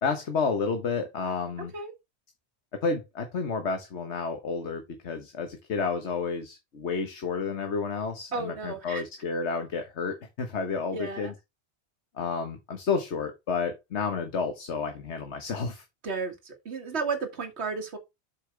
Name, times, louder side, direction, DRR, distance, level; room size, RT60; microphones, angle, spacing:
voice 1, 0.0-1.7 2.7-11.3 12.1-15.8, left 5 dB, 90° left, 1.5 m, -31 dB
voice 2, 8.3-9.0 10.9-11.3 16.0-18.0, right 4 dB, 75° right, 1.9 m, -33 dB
7.6 x 6.3 x 3.3 m
omnidirectional pair, 1.1 m